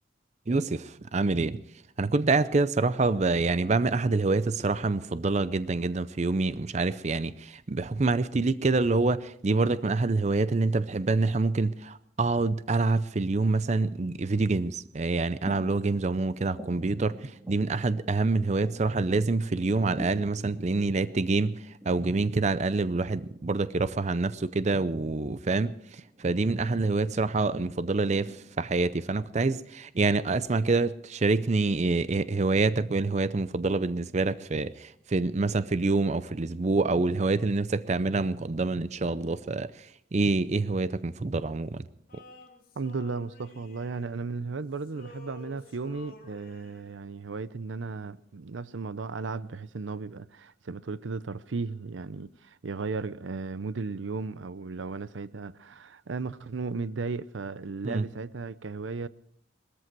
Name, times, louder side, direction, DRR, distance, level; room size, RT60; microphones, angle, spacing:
voice 1, 0.5-1.6 2.0-41.8 42.1-42.2 57.8-58.0, right 3 dB, 35° right, 0.5 m, -26 dB
sound 1, 15.2-29.4, right 1 dB, 20° right, 3.7 m, -49 dB
Male singing, 42.1-44.5 44.8-47.0, left 3 dB, 50° left, 2.8 m, -51 dB
voice 2, 42.8-59.1, right 4 dB, 80° right, 0.6 m, -35 dB
20.5 x 14.0 x 4.6 m
head